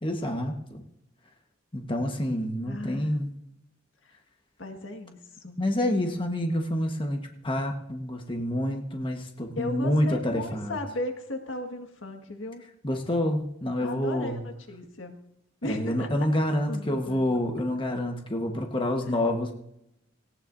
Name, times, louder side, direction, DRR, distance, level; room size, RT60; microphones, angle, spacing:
voice 1, 0.0-0.8 1.7-3.3 5.6-10.8 12.8-14.4 15.6-19.5, left 1 dB, 25° left, 3 dB, 1.3 m, -28 dB
voice 2, 2.7-3.2 4.6-5.6 9.6-12.7 13.8-15.1 15.6-16.1 16.7-17.3 19.1-19.2, left 1 dB, 75° left, 4 dB, 1.8 m, -36 dB
18.5 x 18.0 x 2.7 m, 0.80 s
head